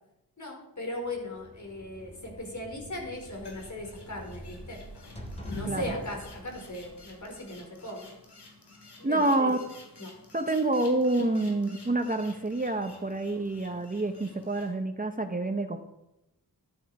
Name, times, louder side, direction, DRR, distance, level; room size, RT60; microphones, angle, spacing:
voice 1, 0.4-4.8 5.5-8.1 9.0-9.5 10.0-10.1 10.4-10.5, left 1 dB, 50° left, 0 dB, 4.8 m, -38 dB
sound 1, 1.0-7.8, equal, 15° left, 3.3 m, -45 dB
sound 2, 3.1-14.7, left 2 dB, 85° left, 3.9 m, -50 dB
voice 2, 9.0-9.6 10.3-15.8, right 2 dB, 20° right, 7 dB, 0.9 m, -27 dB
14.5 x 11.0 x 4.9 m, 0.91 s
wide cardioid pair, 90°, 39 cm